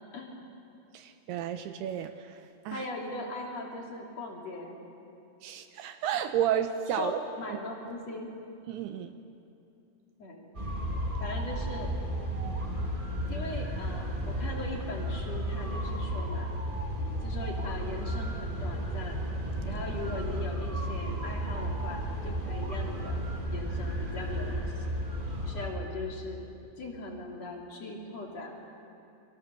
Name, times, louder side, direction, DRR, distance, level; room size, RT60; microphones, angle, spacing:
voice 1, 0.1-0.4 2.7-4.8 6.9-8.3 10.2-10.5 11.2-11.9 13.3-16.5 17.2-19.2 19.6-23.2 23.5-25.0 25.5-26.4 26.8-28.5, left 2 dB, 40° left, -1 dB, 3.5 m, -39 dB
voice 2, 0.9-2.9 5.4-7.2 7.5-7.6 8.7-9.2, right 10 dB, 75° right, 8 dB, 2.6 m, -32 dB
sound 1, 10.5-25.7, right 1 dB, 20° right, 1.3 m, -33 dB
29.5 x 24.0 x 6.9 m, 2.6 s
omnidirectional pair, 4.9 m